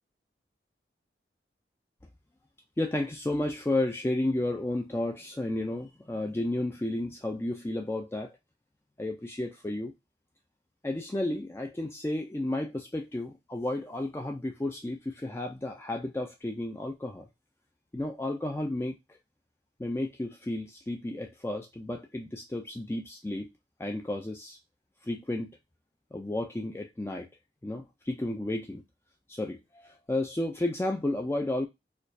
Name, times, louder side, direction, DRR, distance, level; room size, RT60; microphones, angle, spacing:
voice 1, 2.8-8.4 9.0-9.9 10.8-17.3 17.9-19.2 19.8-23.5 23.8-24.6 25.0-25.5 26.1-27.3 27.6-28.8 29.3-31.7, left 1 dB, 15° left, 0.3 m, -32 dB
4.3 x 2.3 x 2.6 m
head